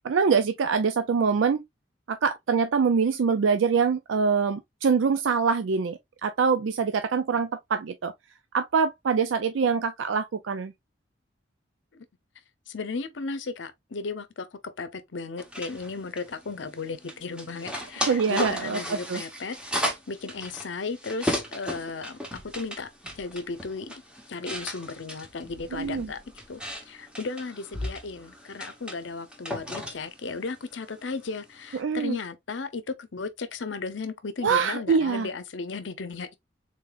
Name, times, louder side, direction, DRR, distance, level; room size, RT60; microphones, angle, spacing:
voice 1, 0.0-1.6 2.1-8.1 8.5-10.7 18.1-19.2 25.7-26.1 31.7-32.2 34.4-35.3, right 5 dB, 85° right, 0.4 m, -24 dB
voice 2, 12.7-19.6 20.1-22.9 23.2-23.9 24.3-26.2 26.5-36.4, left 4 dB, 70° left, 0.7 m, -35 dB
sound 1, 15.4-31.8, equal, 5° right, 1.0 m, -36 dB
3.8 x 3.8 x 2.4 m
head